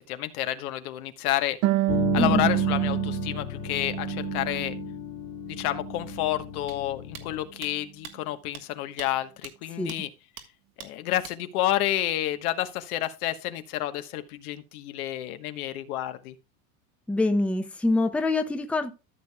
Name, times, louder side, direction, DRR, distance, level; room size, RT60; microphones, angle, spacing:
voice 1, 0.1-1.6 2.1-4.7 5.5-10.1 10.8-16.3, left 14 dB, 75° left, 1.3 m, -30 dB
Harp, 1.6-5.0 5.4-6.4, right 16 dB, 40° right, 0.5 m, -28 dB
sound 1, 1.9-7.5, left 13 dB, 55° left, 1.0 m, -35 dB
voice 2, 2.2-2.5 9.8-9.9 17.1-18.9, left 2 dB, 5° left, 0.7 m, -25 dB
sound 2, 6.7-6.8 7.1-7.3 7.6-7.7 8.0-8.1 8.5-8.6 9.0-9.1 9.4-9.5 9.9-10.0 10.4-10.5 10.8-10.9 11.2-11.4, right 9 dB, 70° right, 1.6 m, -42 dB
14.0 x 6.7 x 2.3 m
supercardioid pair, 125°, 44 cm